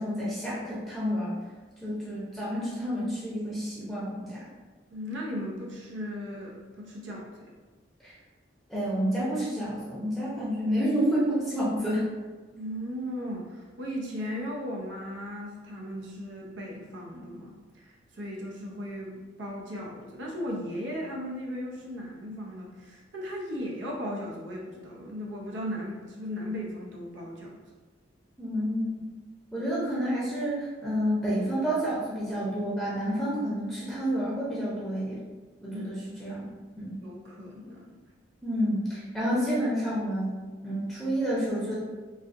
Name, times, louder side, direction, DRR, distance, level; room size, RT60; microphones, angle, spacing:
voice 1, 0.0-1.4 1.8-4.4 8.0-8.1 8.7-12.1 28.4-29.0 29.5-35.2 35.6-36.4 36.8-37.0 38.4-40.3 40.6-41.7, equal, ahead, -9 dB, 0.7 m, -29 dB
voice 2, 4.9-7.3 12.6-27.6 35.7-35.8 37.0-37.9, equal, 80° right, -2 dB, 0.6 m, -37 dB
4.0 x 2.5 x 2.5 m, 1.3 s
head